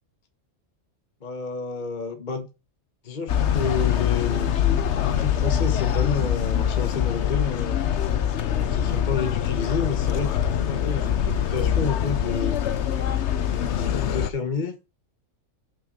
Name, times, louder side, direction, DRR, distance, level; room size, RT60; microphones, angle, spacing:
voice 1, 1.2-2.5 3.0-4.5 4.9-7.9 8.5-12.6 13.5-14.8, left 5 dB, 35° left, 1.3 m, -30 dB
sound 1, 3.3-14.3, left 9 dB, 60° left, 1.0 m, -24 dB
5.8 x 5.8 x 6.8 m
omnidirectional pair, 1.5 m